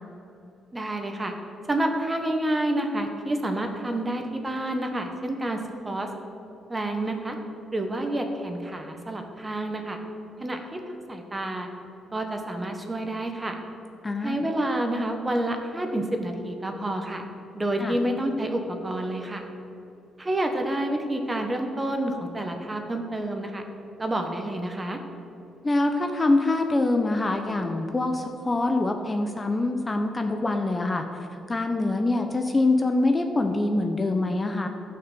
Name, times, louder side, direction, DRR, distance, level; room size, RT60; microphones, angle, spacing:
voice 1, 0.7-1.3 1.7-6.1 6.7-7.4 7.7-10.0 10.4-10.8 11.1-11.7 12.1-13.5 14.2-17.2 17.5-19.4 20.2-23.6 24.0-25.0, right 1 dB, 20° right, 4 dB, 1.3 m, -29 dB
voice 2, 14.0-14.4 17.8-18.0 25.6-31.0 31.5-34.7, left 2 dB, 25° left, 5 dB, 0.8 m, -24 dB
11.5 x 5.9 x 6.8 m, 3.0 s
cardioid pair, 90°, 0 cm